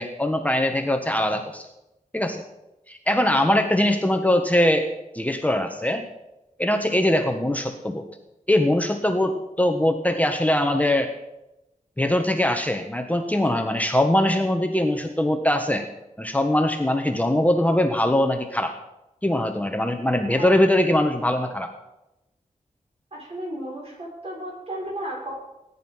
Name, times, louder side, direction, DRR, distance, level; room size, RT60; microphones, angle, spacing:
voice 1, 0.0-1.7 2.1-2.4 2.9-4.9 5.1-6.0 6.6-8.0 8.5-11.1 12.0-15.8 16.2-18.7 19.2-21.7, left 1 dB, 10° left, 5 dB, 1.3 m, -22 dB
voice 2, 23.1-25.4, right 1 dB, 50° right, -3 dB, 6.8 m, -34 dB
19.0 x 9.9 x 5.7 m, 0.94 s
wide cardioid pair, 75°, 13 cm